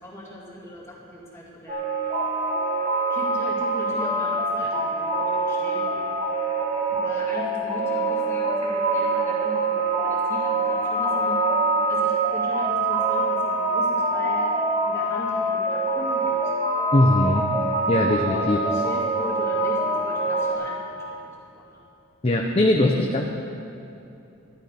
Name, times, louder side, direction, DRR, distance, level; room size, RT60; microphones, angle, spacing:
voice 1, 0.0-2.2 3.1-6.0 6.9-11.5 11.9-14.5 14.8-16.5 18.3-21.3 21.6-21.8, equal, 15° left, -6 dB, 3.0 m, -39 dB
sound 1, 1.7-20.5, right 2 dB, 30° right, 2.3 m, -24 dB
voice 2, 16.9-17.5 17.9-18.6 22.2-23.3, left 1 dB, 30° left, 1 dB, 0.8 m, -20 dB
13.0 x 12.0 x 5.8 m, 2.8 s
head